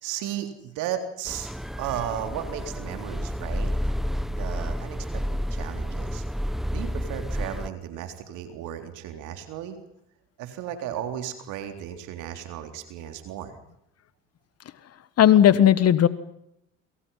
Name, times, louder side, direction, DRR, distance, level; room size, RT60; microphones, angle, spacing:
voice 1, 0.0-1.5 1.8-3.9 4.4-6.2 6.7-9.8 10.4-13.5, right 10 dB, 75° right, 7 dB, 3.8 m, -35 dB
sound 1, 1.3-7.7, equal, ahead, 0.9 m, -30 dB
voice 2, 15.2-16.1, left 10 dB, 50° left, 15 dB, 1.6 m, -16 dB
28.5 x 26.5 x 5.8 m, 0.78 s
hypercardioid pair, 70°, 31 cm